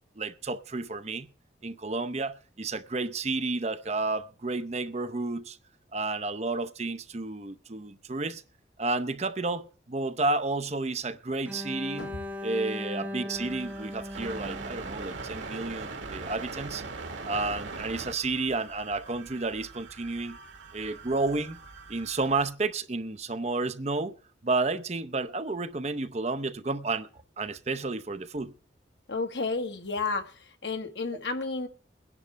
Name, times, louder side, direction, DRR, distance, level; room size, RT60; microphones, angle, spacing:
voice 1, 0.2-1.3 1.6-5.6 5.9-8.4 8.8-12.1 12.4-16.8 17.2-20.4 20.7-21.6 21.9-24.2 24.4-27.1 27.4-28.5, right 3 dB, 35° right, 0.7 m, -31 dB
Bowed string instrument, 11.5-15.5, left 1 dB, 10° right, 1.1 m, -38 dB
sound 1, 13.3-22.5, right 3 dB, 80° right, 1.7 m, -41 dB
voice 2, 29.1-30.3 30.6-31.7, left 3 dB, 70° left, 1.4 m, -31 dB
22.0 x 10.5 x 3.4 m
head